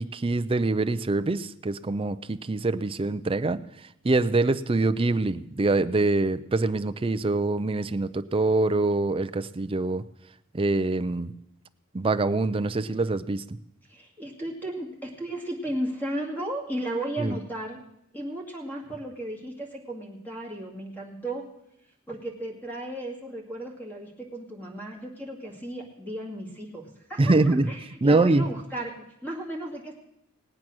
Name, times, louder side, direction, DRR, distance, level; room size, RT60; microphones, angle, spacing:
voice 1, 0.0-3.6 4.0-10.0 10.5-11.3 11.9-13.6 17.2-17.4 27.2-27.7 28.0-28.4, right 2 dB, 25° right, 11 dB, 0.5 m, -24 dB
voice 2, 13.9-17.8 18.1-21.5 22.1-27.4 27.7-28.9 29.2-29.9, right 1 dB, 10° left, -1 dB, 2.2 m, -34 dB
18.5 x 8.7 x 6.1 m, 0.81 s
head